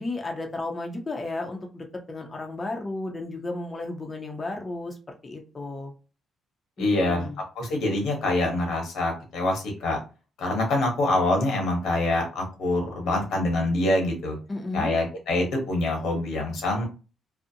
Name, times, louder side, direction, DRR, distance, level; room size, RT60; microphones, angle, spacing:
voice 1, 0.0-5.9 6.8-7.4 14.5-15.0, left 2 dB, 25° left, 2 dB, 0.5 m, -33 dB
voice 2, 6.8-7.3 7.6-10.0 10.4-14.4 14.7-16.8, left 2 dB, 80° left, 1 dB, 1.0 m, -25 dB
2.5 x 2.0 x 2.7 m, 0.33 s
cardioid pair, 90°, 0 cm